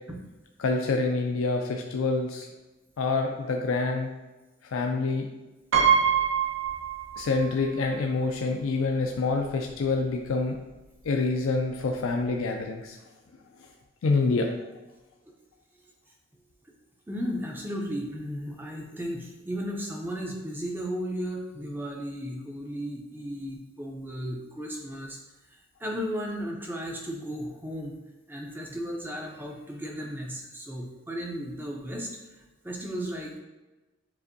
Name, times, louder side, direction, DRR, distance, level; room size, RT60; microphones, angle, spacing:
voice 1, 0.6-2.5 3.0-4.1 4.7-5.3 7.2-10.5 11.0-13.0 14.0-14.5, left 3 dB, 85° left, 2 dB, 0.4 m, -26 dB
Piano, 5.7-7.5 7.9-8.0 9.1-9.2 9.5-9.8, right 7 dB, 75° right, 0.6 m, -24 dB
voice 2, 17.1-25.2 25.5-27.9 28.3-32.1 32.6-33.4, equal, 10° right, 0 dB, 0.4 m, -35 dB
6.9 x 2.5 x 2.6 m, 1.1 s
head